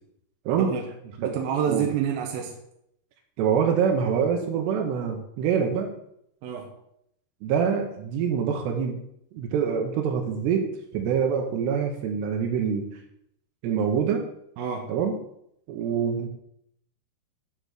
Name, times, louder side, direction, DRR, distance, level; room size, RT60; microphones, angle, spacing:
voice 1, 1.2-2.5 6.4-6.7 14.6-14.9, right 8 dB, 70° right, 1 dB, 2.6 m, -28 dB
voice 2, 3.4-5.9 7.4-9.0 9.3-10.6 10.9-12.9 13.6-14.3 14.9-15.1 15.7-16.3, right 7 dB, 85° right, 2 dB, 3.1 m, -25 dB
9.4 x 4.0 x 6.3 m, 0.75 s
omnidirectional pair, 4.8 m